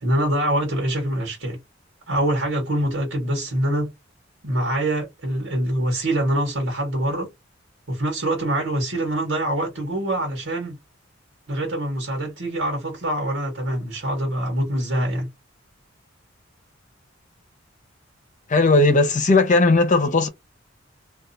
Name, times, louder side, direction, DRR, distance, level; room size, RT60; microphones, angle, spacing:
voice 1, 0.0-1.6 2.1-3.9 4.4-7.3 7.9-10.8 11.5-15.3, right 1 dB, 85° right, 1.4 m, -24 dB
voice 2, 18.5-20.3, left 3 dB, 40° left, 0.7 m, -17 dB
2.4 x 2.4 x 2.7 m
head